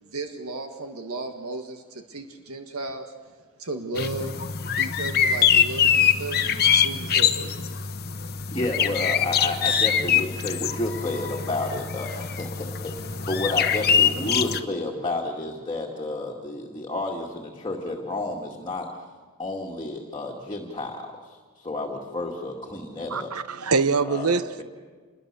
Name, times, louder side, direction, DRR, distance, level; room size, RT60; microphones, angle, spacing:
voice 1, 0.0-3.1 3.6-4.4 4.8-7.5, right 2 dB, 75° right, 1.7 m, -35 dB
sound 1, 4.0-14.6, left 8 dB, 45° left, 1.1 m, -23 dB
voice 2, 8.5-18.9 19.4-23.3 24.1-24.6, left 2 dB, 20° left, 2.1 m, -31 dB
voice 3, 23.1-24.6, right 4 dB, 90° right, 1.0 m, -24 dB
27.5 x 22.0 x 6.9 m
head